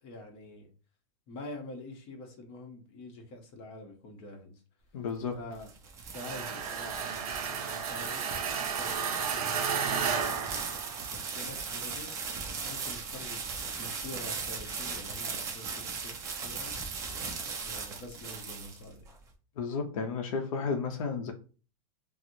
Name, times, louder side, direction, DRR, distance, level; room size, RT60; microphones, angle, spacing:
voice 1, 0.0-0.7 1.3-4.6 5.3-5.7 6.1-8.3 8.8-10.4 11.1-12.1 12.6-13.4 13.8-16.7 17.6-19.1, left 2 dB, 30° left, 2 dB, 0.8 m, -46 dB
voice 2, 4.9-5.4 16.5-16.7 19.6-21.3, left 5 dB, 70° left, 4 dB, 0.6 m, -33 dB
sound 1, 5.3-19.1, right 5 dB, 15° right, 0.4 m, -38 dB
sound 2, 6.1-11.4, right 7 dB, 80° right, 0.6 m, -33 dB
4.3 x 2.0 x 2.6 m, 0.36 s
supercardioid pair, 165°, 18 cm